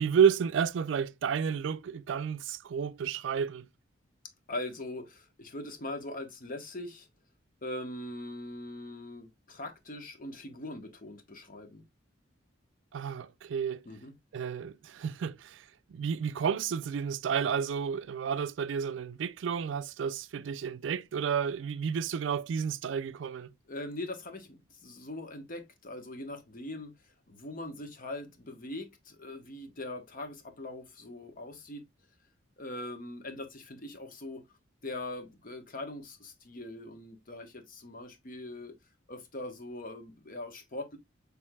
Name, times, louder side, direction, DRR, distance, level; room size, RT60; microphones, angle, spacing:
voice 1, 0.0-3.7 12.9-13.8 14.3-15.6 15.9-23.5, right 7 dB, 80° right, 0.4 m, -31 dB
voice 2, 4.5-7.1 7.6-11.8 13.8-14.2 23.7-31.8 32.6-34.6 34.8-38.7 39.1-41.0, left 2 dB, 45° left, 1.0 m, -41 dB
6.3 x 3.4 x 2.2 m
head